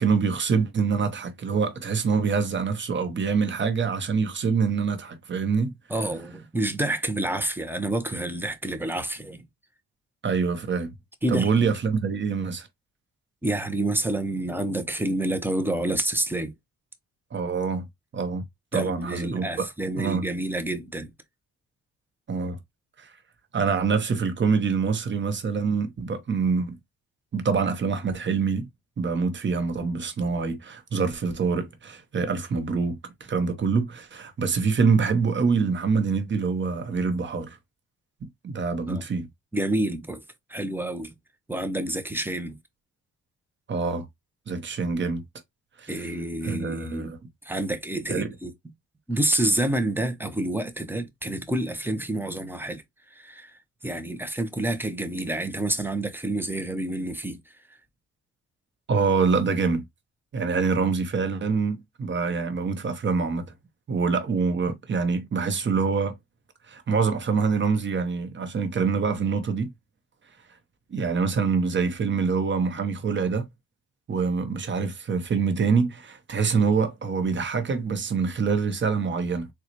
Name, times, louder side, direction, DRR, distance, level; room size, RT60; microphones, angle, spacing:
voice 1, 0.0-5.7 10.2-10.9 11.3-12.7 17.3-17.9 18.1-18.4 18.7-19.7 20.0-20.3 22.3-22.6 23.0-23.1 23.5-26.8 27.3-28.7 29.0-37.6 38.4-39.3 43.7-44.1 44.5-45.2 45.8-45.9 46.4-47.2 48.1-48.3 58.9-59.8 60.3-63.4 63.9-66.2 66.7-69.7 70.9-73.5 74.1-79.5, right 5 dB, 40° right, 0.9 m, -25 dB
voice 2, 5.9-9.4 11.2-11.7 13.4-16.5 18.7-21.1 38.9-39.0 39.5-40.2 40.5-41.1 41.5-42.6 45.9-47.2 47.4-48.5 49.1-52.8 53.1-57.4 57.7-57.8, right 1 dB, 5° right, 0.7 m, -28 dB
4.0 x 2.3 x 3.0 m
cardioid pair, 90°, 30 cm